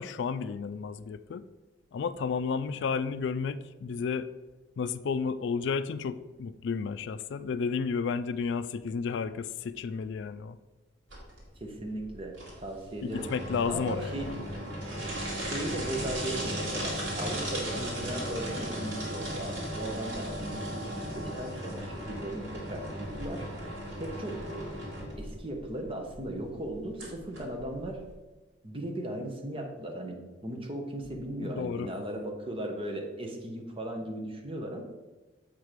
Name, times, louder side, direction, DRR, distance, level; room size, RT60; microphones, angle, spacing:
voice 1, 0.0-1.4 1.9-4.3 4.8-10.6 13.0-14.4 31.4-31.9, left 5 dB, 65° left, 14 dB, 0.3 m, -32 dB
sound 1, 11.1-28.1, right 1 dB, 85° right, 2.3 m, -37 dB
voice 2, 11.6-13.3 13.7-14.4 15.3-23.5 24.0-24.5 25.2-28.0 28.6-34.8, right 1 dB, 30° right, 3 dB, 1.0 m, -37 dB
7.4 x 4.7 x 5.0 m, 1.2 s
head